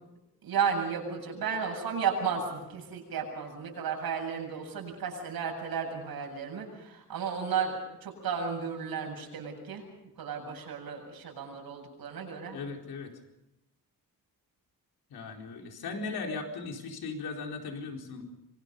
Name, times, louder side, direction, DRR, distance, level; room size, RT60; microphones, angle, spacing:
voice 1, 0.4-9.8 10.2-12.6, right 6 dB, 80° right, 1 dB, 8.0 m, -33 dB
voice 2, 12.5-13.1 15.1-18.2, left 4 dB, 85° left, 2 dB, 4.5 m, -37 dB
26.5 x 25.0 x 5.4 m, 0.87 s
wide cardioid pair, 165°, 36 cm